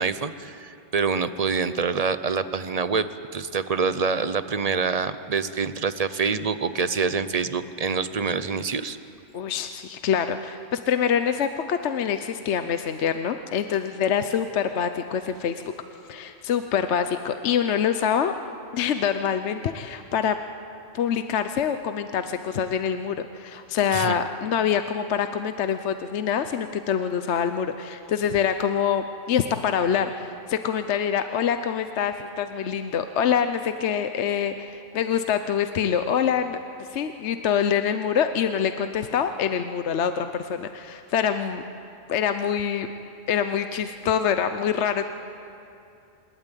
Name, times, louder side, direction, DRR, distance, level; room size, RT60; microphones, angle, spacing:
voice 1, 0.0-3.1 3.3-9.0 23.9-24.2, right 5 dB, 40° right, 12 dB, 0.6 m, -26 dB
voice 2, 9.3-15.6 16.1-18.3 18.7-20.4 20.9-41.6 42.1-42.9 43.3-45.1, left 8 dB, 70° left, 9 dB, 1.0 m, -25 dB
27.0 x 12.5 x 9.1 m, 2.6 s
omnidirectional pair, 1.3 m